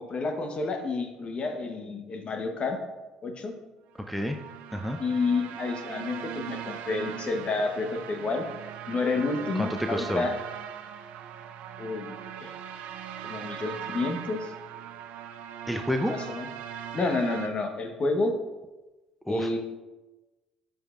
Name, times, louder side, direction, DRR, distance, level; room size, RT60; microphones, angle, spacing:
voice 1, 0.0-2.8 3.2-3.5 5.0-8.4 8.9-10.3 11.8-12.5 13.2-14.5 16.3-16.4 16.9-18.3 19.3-19.6, left 3 dB, 45° left, 5 dB, 1.1 m, -29 dB
sound 1, 4.0-17.5, right 9 dB, 70° right, 0.5 m, -40 dB
voice 2, 4.1-4.4 4.7-5.0 9.5-10.2 15.7-16.1 19.3-19.6, equal, ahead, 5 dB, 0.6 m, -29 dB
10.5 x 5.2 x 2.5 m, 1.1 s
hypercardioid pair, 60°, 3 cm